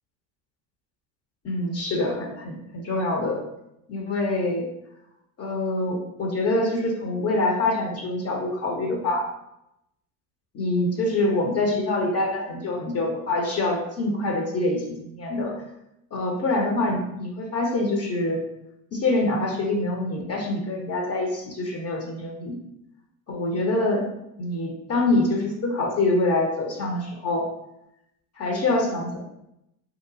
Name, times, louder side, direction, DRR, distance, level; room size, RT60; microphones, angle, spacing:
voice 1, 1.4-3.4 3.9-4.7 5.4-9.3 10.5-15.5 16.1-18.4 18.9-22.6 23.3-24.1 24.4-27.4 28.4-29.2, left 2 dB, 35° left, 1 dB, 0.5 m, -25 dB
2.8 x 2.2 x 2.5 m, 0.83 s
supercardioid pair, 85°, 47 cm